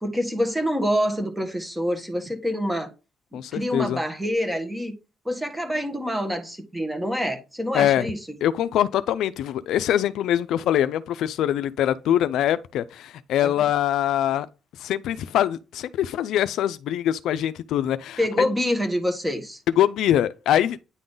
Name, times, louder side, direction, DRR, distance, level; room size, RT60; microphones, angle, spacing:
voice 1, 0.0-2.9 3.3-4.9 5.2-8.2 13.4-13.7 18.2-19.6, equal, 10° right, 1.5 m, -26 dB
voice 2, 3.3-4.0 7.7-8.1 8.4-14.5 14.8-18.5 19.8-20.8, left 11 dB, 80° left, 0.4 m, -23 dB
9.4 x 3.8 x 3.8 m
cardioid pair, 90°, 0 cm